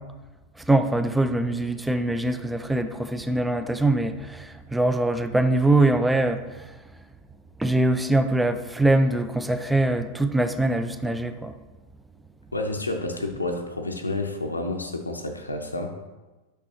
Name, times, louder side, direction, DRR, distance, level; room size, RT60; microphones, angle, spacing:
voice 1, 0.7-6.4 7.6-11.5, right 2 dB, 5° right, 10 dB, 0.3 m, -23 dB
voice 2, 12.5-15.9, left 2 dB, 80° left, 4 dB, 0.5 m, -30 dB
6.1 x 5.4 x 3.0 m, 1.2 s
figure-of-eight pair, 90°, 0 cm